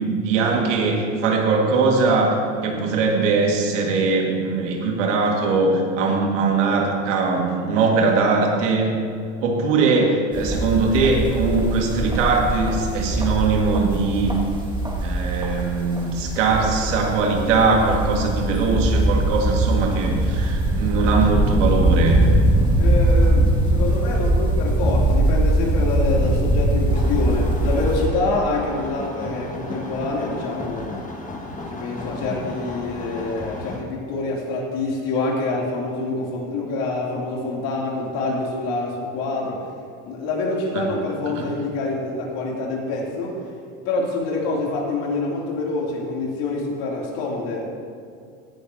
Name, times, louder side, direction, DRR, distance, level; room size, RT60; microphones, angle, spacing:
voice 1, 0.0-2.4 2.6-8.9 9.4-14.4 15.0-22.2 40.7-40.9 41.3-41.5, right 4 dB, 85° right, 1 dB, 2.1 m, -21 dB
sound 1, 10.3-28.1, right 1 dB, 15° right, 2.1 m, -21 dB
voice 2, 22.8-31.0 31.7-39.6 40.1-43.4 43.8-47.6, left 2 dB, 70° left, -2 dB, 3.1 m, -26 dB
sound 2, 26.9-33.8, left 2 dB, 20° left, 1.8 m, -34 dB
17.0 x 11.0 x 2.9 m, 2.3 s
supercardioid pair, 95°, 36 cm